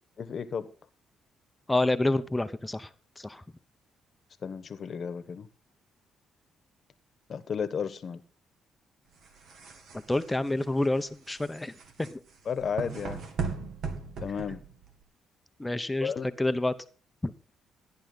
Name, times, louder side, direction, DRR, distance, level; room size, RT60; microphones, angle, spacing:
voice 1, 0.2-0.7 4.4-5.5 7.3-8.2 12.4-13.3 14.2-14.6 16.0-16.3, left 6 dB, 50° left, 1.2 m, -33 dB
voice 2, 1.7-2.9 3.2-3.4 9.9-11.7 12.0-12.2 15.6-16.1 16.4-16.7 17.2-17.3, left 2 dB, 15° left, 0.8 m, -28 dB
sound 1, 9.1-15.0, right 5 dB, 70° right, 2.2 m, -38 dB
14.0 x 10.5 x 4.0 m
cardioid pair, 90°, 0 cm